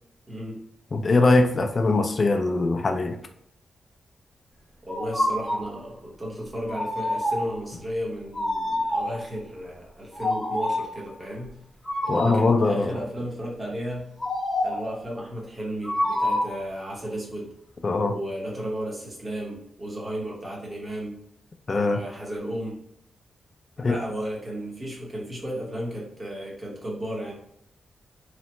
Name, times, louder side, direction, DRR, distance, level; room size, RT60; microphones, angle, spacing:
voice 1, 0.3-0.6 4.8-11.6 12.0-14.1 14.6-17.5 18.1-21.2 21.8-22.8 23.8-27.3, equal, 20° right, -2 dB, 0.9 m, -34 dB
voice 2, 0.9-3.2 12.1-13.0 17.8-18.2 21.7-22.0 23.8-24.0, left 3 dB, 35° left, 5 dB, 0.3 m, -21 dB
sound 1, 4.9-5.7 6.7-7.6 8.3-9.3 10.1-11.0 11.9-12.6 14.2-14.9 15.8-16.6, left 1 dB, 10° left, 0.7 m, -27 dB
3.2 x 2.1 x 2.9 m, 0.72 s
wide cardioid pair, 150°, 0 cm